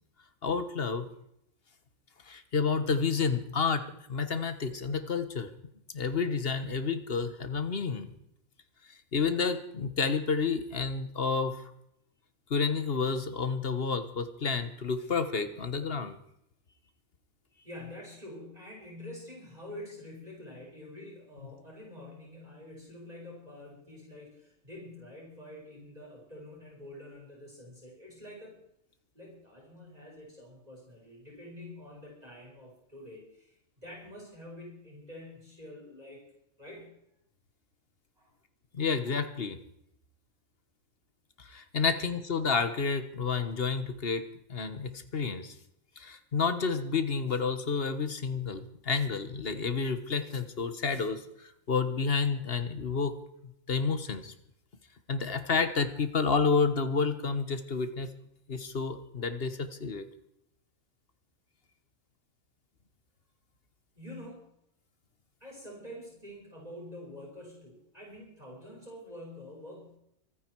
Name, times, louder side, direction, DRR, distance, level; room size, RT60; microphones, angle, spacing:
voice 1, 0.4-1.1 2.3-3.8 4.1-5.5 5.9-8.1 9.1-11.6 12.5-16.1 38.7-39.6 41.4-44.2 44.5-45.5 46.0-53.1 53.7-54.3 55.1-58.1 58.5-60.1, left 5 dB, 50° left, 11 dB, 1.5 m, -30 dB
voice 2, 17.6-28.6 29.1-36.2 36.6-36.9 38.2-38.3 41.8-41.9 64.0-64.5 65.4-70.0, left 1 dB, 30° right, -3 dB, 5.5 m, -47 dB
25.5 x 9.8 x 4.7 m, 0.75 s
omnidirectional pair, 1.4 m